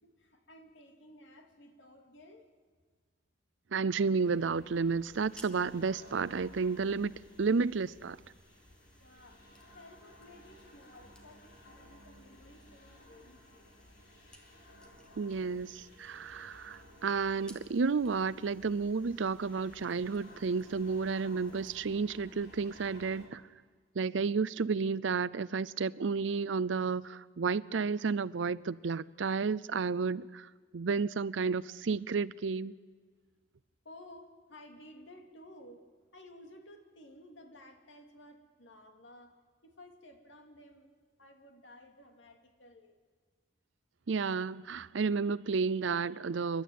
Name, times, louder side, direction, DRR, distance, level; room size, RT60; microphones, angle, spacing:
voice 1, 0.0-2.5 9.0-9.4 9.7-13.7 33.8-35.8 36.1-39.3 39.6-43.0, left 1 dB, 80° left, 2.7 m, -55 dB
voice 2, 3.7-8.2 15.2-23.4 24.0-30.5 30.7-32.7 44.1-46.6, right 5 dB, 85° right, 0.5 m, -31 dB
sound 1, 4.2-23.3, left 1 dB, 60° left, 4.1 m, -57 dB
sound 2, 5.1-21.7, equal, 5° left, 1.5 m, -61 dB
29.0 x 12.0 x 9.4 m
head